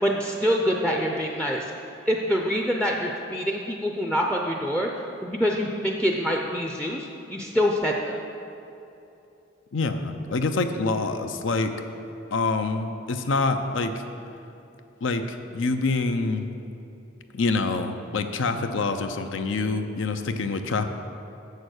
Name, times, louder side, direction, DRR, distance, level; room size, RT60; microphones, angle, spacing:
voice 1, 0.0-1.7 2.1-4.9 5.2-7.9, equal, 5° left, 1 dB, 0.4 m, -25 dB
voice 2, 9.7-11.7 12.3-14.1 15.0-16.5 17.3-20.8, left 3 dB, 85° left, 8 dB, 0.6 m, -26 dB
7.1 x 6.6 x 6.4 m, 2.8 s
head